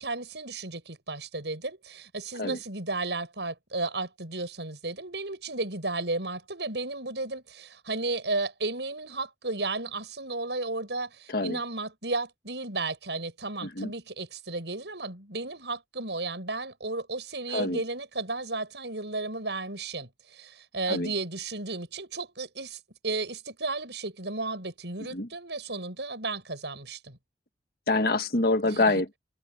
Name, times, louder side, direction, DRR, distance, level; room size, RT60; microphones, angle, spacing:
voice 1, 0.0-27.2 28.6-28.9, right 3 dB, 75° right, 7.3 m, -34 dB
voice 2, 27.9-29.2, left 2 dB, 55° left, 1.8 m, -26 dB
head